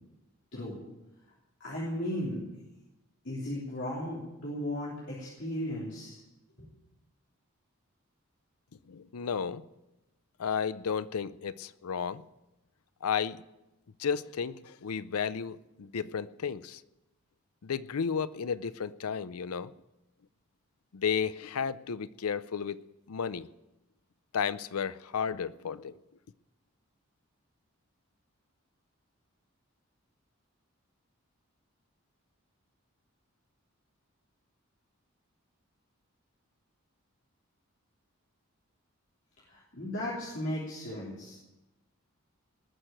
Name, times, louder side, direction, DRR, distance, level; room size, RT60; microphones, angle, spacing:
voice 1, 1.6-2.5 3.2-6.2 6.6-6.7 39.5-41.4, left 1 dB, 55° left, 3.4 m, -36 dB
voice 2, 8.9-9.7 10.4-12.2 13.0-13.4 14.0-16.8 17.6-19.7 20.9-22.8 23.1-23.5 24.3-26.0, left 6 dB, 85° left, 0.5 m, -33 dB
19.5 x 6.5 x 9.0 m
head